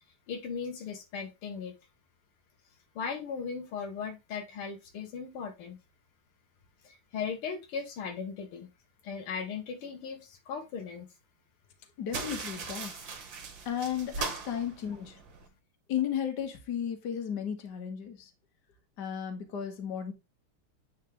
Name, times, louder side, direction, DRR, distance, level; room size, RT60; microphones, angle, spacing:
voice 1, 0.3-1.8 3.0-5.8 6.8-8.7 9.0-11.1, left 6 dB, 80° left, 1.9 m, -37 dB
voice 2, 12.0-13.0 13.7-15.2 15.9-18.3 19.0-20.1, left 9 dB, 55° left, 1.9 m, -34 dB
sound 1, 12.1-15.5, right 4 dB, 60° right, 2.3 m, -39 dB
9.3 x 4.5 x 3.4 m
omnidirectional pair, 2.4 m